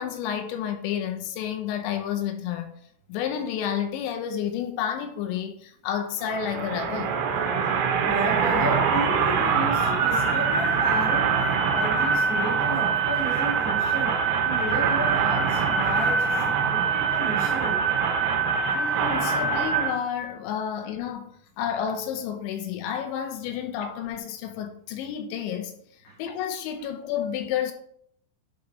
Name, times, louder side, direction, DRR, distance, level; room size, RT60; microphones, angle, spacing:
voice 1, 0.0-2.7 3.1-7.2 18.7-21.3 21.6-25.7 26.2-27.7, left 9 dB, 80° left, 2.9 m, -30 dB
sound 1, 6.2-19.9, right 6 dB, 75° right, 2.5 m, -24 dB
voice 2, 8.0-17.8 26.0-26.1, equal, 50° left, 3.0 m, -32 dB
10.5 x 4.7 x 3.1 m
omnidirectional pair, 5.6 m